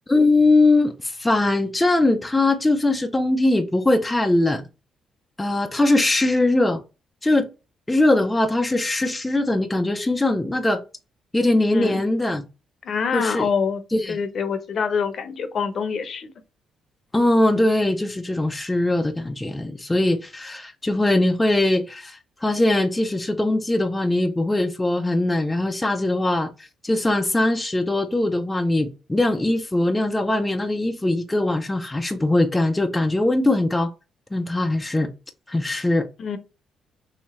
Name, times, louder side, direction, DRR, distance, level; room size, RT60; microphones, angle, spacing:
voice 1, 0.1-4.6 5.4-6.8 7.2-7.5 7.9-10.8 11.3-12.4 13.1-13.5 13.9-14.2 17.1-26.5 26.8-33.9 34.3-35.1 35.5-36.1, left 2 dB, 15° left, 0.5 m, -21 dB
voice 2, 12.8-13.8 14.1-16.3 36.2-36.4, left 6 dB, 55° left, 0.7 m, -25 dB
3.1 x 2.9 x 3.0 m
cardioid pair, 90°, 0 cm